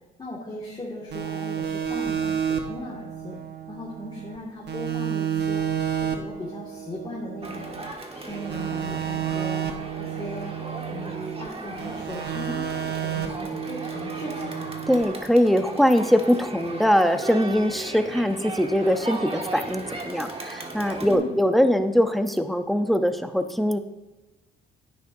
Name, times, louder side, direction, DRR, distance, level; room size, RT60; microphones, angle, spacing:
voice 1, 0.2-3.4 3.7-5.6 6.0-7.8 8.1-10.5 10.9-14.7 21.1-21.4, left 1 dB, 25° left, -5 dB, 2.1 m, -38 dB
sound 1, 1.1-4.4 4.7-7.9 8.3-11.5 11.8-15.0, right 8 dB, 60° right, 1.1 m, -31 dB
Crowd, 7.4-21.1, right 2 dB, 30° right, 1.5 m, -37 dB
voice 2, 14.9-23.8, equal, ahead, 7 dB, 0.7 m, -22 dB
10.0 x 9.4 x 2.7 m, 1.1 s
cardioid pair, 90°, 20 cm